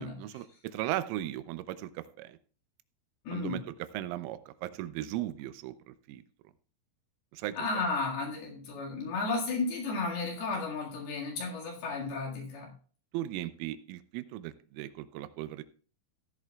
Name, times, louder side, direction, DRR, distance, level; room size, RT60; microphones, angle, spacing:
voice 1, 0.0-2.4 3.3-6.2 7.3-7.8 13.1-15.6, right 14 dB, 85° right, 13 dB, 3.2 m, -37 dB
voice 2, 3.3-3.6 7.6-12.7, left 3 dB, 60° left, -2 dB, 3.6 m, -33 dB
15.5 x 11.0 x 2.3 m, 0.40 s
omnidirectional pair, 5.7 m